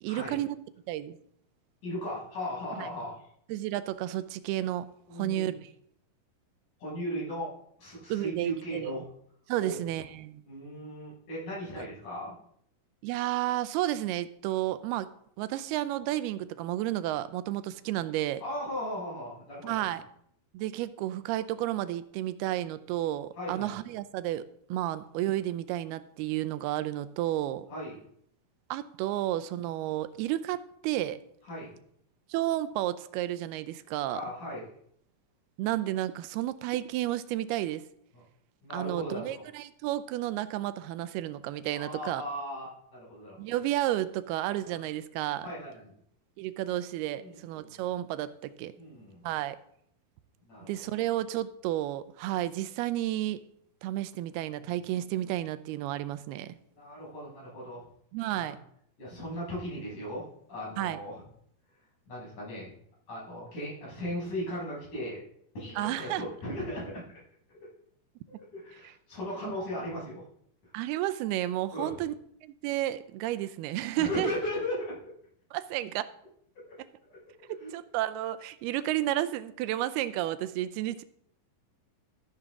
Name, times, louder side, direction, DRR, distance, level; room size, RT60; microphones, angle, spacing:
voice 1, 0.0-0.6 0.9-1.2 2.8-2.9 3.5-4.9 5.2-5.7 8.1-8.9 9.5-10.4 11.8-11.9 13.0-15.1 15.4-18.4 19.6-20.0 20.5-24.4 24.7-27.7 28.7-31.2 32.3-34.2 35.6-37.9 38.7-42.2 43.4-45.5 46.4-48.7 49.2-49.6 50.7-53.4 53.8-56.6 58.1-58.6 60.8-61.0 65.8-66.2 69.4-69.6 70.7-72.1 72.4-74.3 75.5-76.1 77.5-81.0, right 14 dB, 90° right, 14 dB, 2.6 m, -32 dB
voice 2, 1.8-3.2 5.1-5.6 6.8-7.5 7.8-9.1 9.6-9.9 10.5-12.3 18.4-19.8 23.4-23.8 27.7-28.0 31.5-31.8 34.1-34.7 38.1-38.2 38.6-39.4 41.7-43.5 44.6-44.7 45.4-45.9 47.2-47.8 48.8-49.2 50.4-50.7 54.6-54.8 56.8-57.8 58.3-58.6 59.0-60.2 60.5-61.2 62.1-62.7 63.1-65.2 65.5-67.2 68.3-70.2 71.7-72.0 74.0-75.0 76.7-76.8 77.0-77.2 77.6-77.8, equal, 50° left, -6 dB, 8.0 m, -37 dB
14.0 x 10.5 x 3.7 m, 0.67 s
omnidirectional pair, 4.4 m